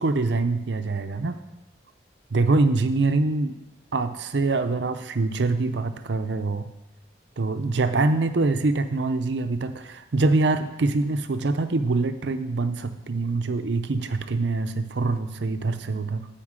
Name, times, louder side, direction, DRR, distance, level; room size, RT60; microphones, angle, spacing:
voice 1, 0.0-1.4 2.3-3.6 3.9-6.7 7.4-16.3, right 3 dB, 70° right, 9 dB, 0.6 m, -24 dB
9.5 x 4.5 x 7.5 m, 0.98 s
head